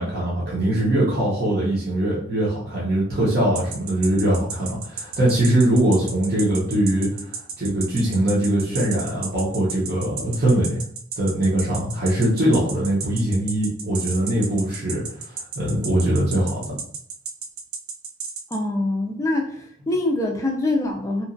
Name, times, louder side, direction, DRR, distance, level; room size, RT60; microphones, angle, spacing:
voice 1, 0.0-10.8 11.2-16.6, right 1 dB, 45° right, -7 dB, 0.7 m, -22 dB
sound 1, 3.5-18.6, right 5 dB, 75° right, 0.4 m, -32 dB
voice 2, 18.5-21.2, left 2 dB, 15° left, 1 dB, 0.3 m, -24 dB
2.8 x 2.4 x 2.5 m, 0.62 s
head